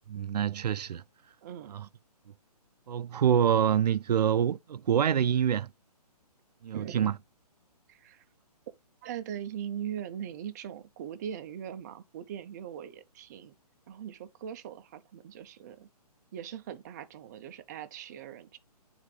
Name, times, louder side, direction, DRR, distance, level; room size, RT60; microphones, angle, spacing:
voice 1, 0.1-1.0 1.7-1.9 2.9-5.7 6.6-7.1, right 9 dB, 80° right, 0.4 m, -26 dB
voice 2, 1.4-1.7 6.7-7.2 7.9-8.2 9.0-13.5 13.9-15.9 16.3-18.6, right 9 dB, 25° right, 0.5 m, -40 dB
9.2 x 3.9 x 3.1 m
hypercardioid pair, 150°, 20 cm